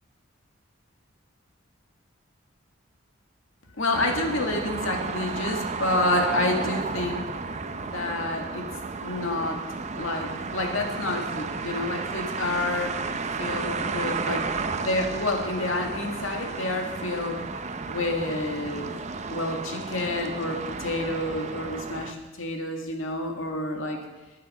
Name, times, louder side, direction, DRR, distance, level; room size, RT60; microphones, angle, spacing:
voice 1, 3.8-7.2 7.8-8.7 9.0-9.6 9.9-17.4 17.9-18.9 19.3-24.0, left 2 dB, 90° left, 2 dB, 1.9 m, -29 dB
sound 1, 3.9-22.1, right 4 dB, 35° right, 0.6 m, -33 dB
11.5 x 9.6 x 5.5 m, 1.1 s
head